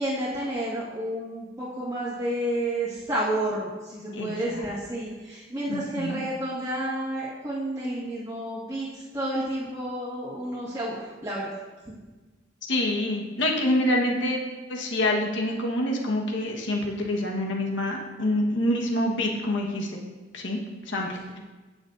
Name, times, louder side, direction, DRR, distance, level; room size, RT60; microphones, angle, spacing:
voice 1, 0.0-11.0 11.2-11.5 21.3-21.4, right 1 dB, 15° right, -10 dB, 1.7 m, -30 dB
voice 2, 4.1-4.6 5.7-6.2 12.6-14.4 14.7-20.0 20.3-20.6 20.9-21.4, left 1 dB, 70° left, 0 dB, 1.3 m, -26 dB
17.0 x 6.4 x 2.6 m, 1.2 s
head